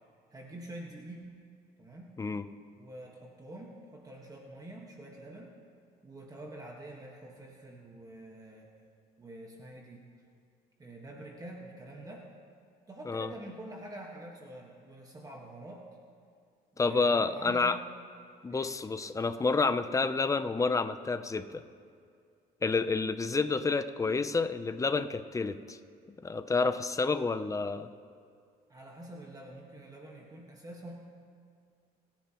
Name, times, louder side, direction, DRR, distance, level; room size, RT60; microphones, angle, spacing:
voice 1, 0.3-1.2 1.8-2.1 2.8-5.5 6.0-8.7 9.2-10.1 10.8-12.3 12.9-15.8 16.7-17.8 18.5-18.7 28.7-31.0, right 1 dB, 20° right, -1 dB, 1.5 m, -46 dB
voice 2, 16.8-17.8 18.4-21.6 22.6-25.8 26.2-27.9, left 4 dB, 20° left, 11 dB, 0.6 m, -29 dB
25.5 x 10.5 x 3.0 m, 2.3 s
cardioid pair, 110°, 17 cm